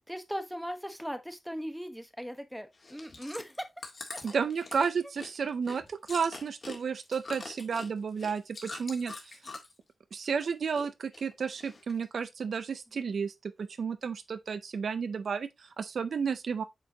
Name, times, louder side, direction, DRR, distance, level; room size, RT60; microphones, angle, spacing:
voice 1, 0.1-3.7 4.1-4.4 12.9-13.1, equal, ahead, 1.0 m, -39 dB
Chewing mastication, 2.7-9.8 10.1-10.9 11.1-12.0 12.5-12.6, left 3 dB, 40° left, 1.8 m, -44 dB
voice 2, 4.2-9.4 10.1-16.6, right 6 dB, 70° right, 0.5 m, -32 dB
8.0 x 4.3 x 2.8 m
wide cardioid pair, 150°, 0 cm